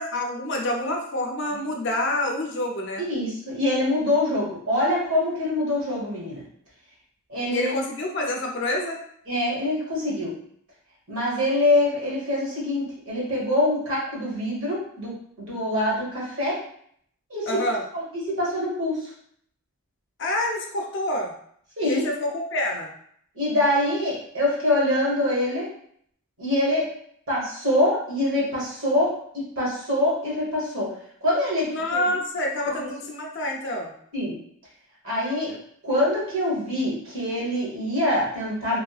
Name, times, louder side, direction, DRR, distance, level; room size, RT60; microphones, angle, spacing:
voice 1, 0.0-3.0 7.5-9.0 17.5-17.8 20.2-21.3 21.8-22.9 31.7-33.9, left 1 dB, 50° left, 1 dB, 0.5 m, -27 dB
voice 2, 3.0-6.4 7.3-7.8 9.3-10.3 11.1-16.6 17.3-19.1 21.8-22.0 23.3-25.7 26.4-26.9 27.3-30.9 31.2-32.0 32.7-32.9 34.1-34.4 35.0-35.5 35.8-38.8, left 1 dB, 65° right, -6 dB, 1.4 m, -25 dB
3.1 x 2.4 x 2.4 m, 0.65 s
head